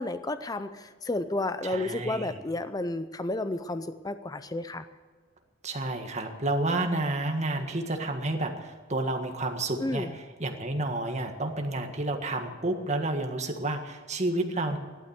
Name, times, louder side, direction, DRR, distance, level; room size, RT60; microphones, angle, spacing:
voice 1, 0.0-4.8 9.8-10.1, left 2 dB, 20° left, 11 dB, 0.5 m, -32 dB
voice 2, 1.6-2.4 5.6-14.8, right 2 dB, 35° right, 4 dB, 1.6 m, -30 dB
15.5 x 12.0 x 6.6 m, 1.5 s
head